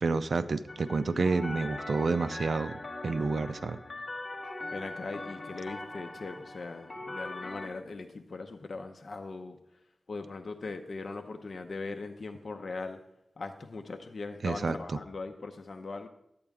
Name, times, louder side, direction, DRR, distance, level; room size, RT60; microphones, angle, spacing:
voice 1, 0.0-3.8 14.4-14.8, right 4 dB, 70° right, 12 dB, 0.5 m, -29 dB
sound 1, 0.7-7.7, left 2 dB, 40° left, 1.3 m, -41 dB
voice 2, 1.0-1.3 4.7-9.6 10.1-13.0 13.4-16.1, left 3 dB, 65° left, 5 dB, 0.7 m, -40 dB
11.0 x 8.6 x 3.5 m, 0.80 s
wide cardioid pair, 75°, 0 cm